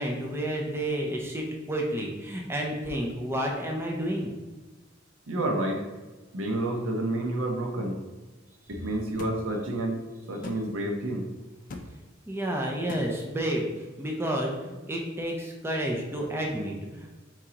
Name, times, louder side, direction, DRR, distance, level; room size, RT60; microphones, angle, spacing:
voice 1, 0.0-4.3 12.3-17.1, right 1 dB, 10° right, -1 dB, 0.5 m, -30 dB
voice 2, 5.3-5.8 6.3-8.0 8.7-10.0 10.3-11.3, right 1 dB, 80° right, 1 dB, 0.8 m, -29 dB
sound 1, 9.2-9.4 10.4-10.6 11.7-11.9 12.9-13.1, left 2 dB, 40° left, 0.4 m, -38 dB
4.6 x 3.7 x 2.9 m, 1.2 s
head